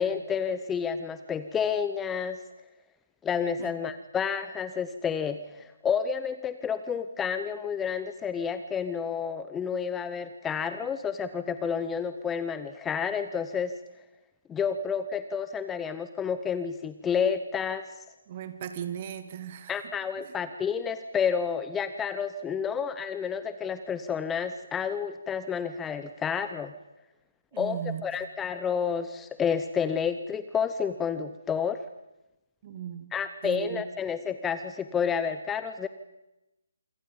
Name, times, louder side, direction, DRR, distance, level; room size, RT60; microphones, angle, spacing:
voice 1, 0.0-2.4 3.2-13.7 14.5-17.8 19.7-26.7 27.6-27.8 28.0-31.8 33.1-35.9, left 7 dB, 10° left, 12 dB, 0.8 m, -30 dB
voice 2, 18.3-19.9 20.2-20.4 27.5-28.0 32.6-33.2 33.4-33.8, right 9 dB, 35° right, 10 dB, 2.2 m, -37 dB
27.5 x 24.5 x 5.4 m, 0.94 s
figure-of-eight pair, 140°, 0 cm